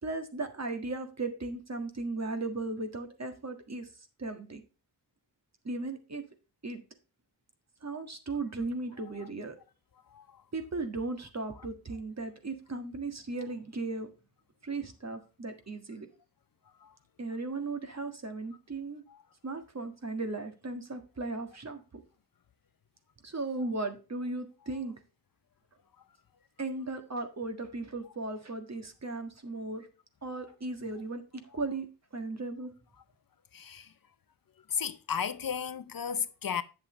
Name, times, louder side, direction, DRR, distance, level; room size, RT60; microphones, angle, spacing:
voice 1, 0.0-3.9 4.2-4.6 5.6-6.3 6.6-6.8 7.8-9.6 10.5-14.1 14.6-16.1 17.2-19.0 19.4-22.0 23.2-24.9 26.6-29.9 30.2-31.9 32.1-32.7, right 3 dB, 40° right, 1.7 m, -36 dB
voice 2, 10.1-10.4 16.8-16.9 33.5-33.9 34.7-36.6, left 7 dB, 55° left, 0.6 m, -34 dB
8.9 x 7.1 x 3.2 m
wide cardioid pair, 100°, 41 cm